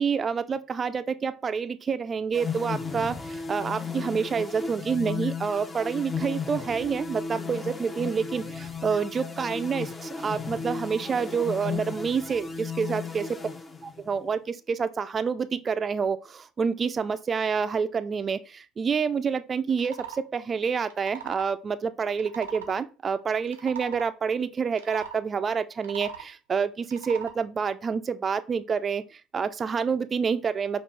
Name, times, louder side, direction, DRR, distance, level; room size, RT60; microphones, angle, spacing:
voice 1, 0.0-13.3 13.8-30.8, right 6 dB, 35° right, 0.3 m, -28 dB
sound 1, 2.3-14.2, left 5 dB, 25° left, 0.6 m, -35 dB
sound 2, 19.7-20.2 20.8-21.5 22.1-22.8 23.4-24.1 24.7-25.2 25.7-26.3 26.8-27.4, right 8 dB, 85° right, 0.5 m, -40 dB
5.2 x 2.5 x 3.2 m
hypercardioid pair, 60°, 0 cm